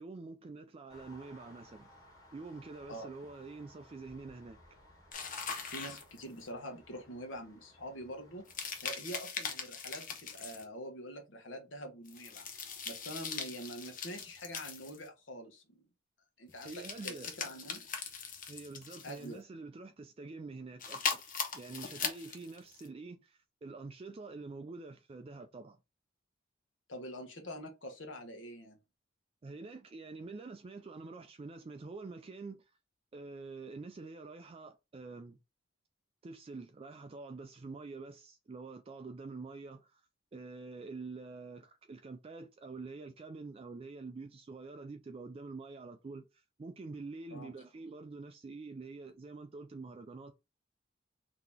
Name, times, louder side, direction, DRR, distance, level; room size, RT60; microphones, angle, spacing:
voice 1, 0.0-1.9 2.3-4.6 16.6-17.3 18.5-25.8 29.4-32.7 33.1-35.4 36.2-40.0 40.3-50.3, right 3 dB, 30° right, 0.3 m, -46 dB
sound 1, 0.9-8.8, left 1 dB, 20° left, 1.6 m, -60 dB
sound 2, 5.1-6.5 8.5-10.6 12.1-15.1 16.5-19.3 20.8-22.9, left 5 dB, 45° left, 0.9 m, -40 dB
voice 2, 5.7-8.5 8.8-12.5 12.8-15.8 16.4-17.9 19.0-19.4 26.9-28.8 47.3-47.5, equal, 70° left, 1.2 m, -45 dB
3.8 x 2.8 x 3.5 m
head